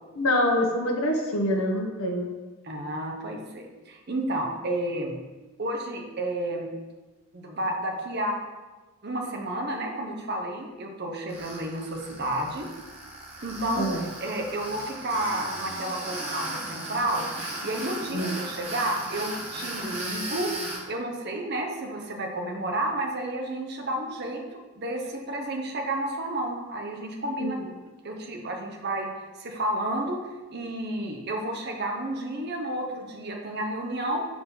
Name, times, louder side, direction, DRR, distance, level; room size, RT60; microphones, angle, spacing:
voice 1, 0.1-2.3 13.8-14.0 18.1-18.3 27.4-27.5, left 1 dB, 80° left, 1 dB, 1.1 m, -25 dB
voice 2, 2.6-5.2 5.6-6.7 7.3-8.4 9.0-12.7 13.4-17.3 17.6-20.5 20.9-27.6 28.0-29.1 29.4-30.2 30.5-34.3, right 1 dB, 45° right, 2 dB, 0.8 m, -31 dB
Tools, 11.3-20.8, right 1 dB, 25° right, 1.1 m, -36 dB
5.5 x 4.7 x 4.1 m, 1.2 s
head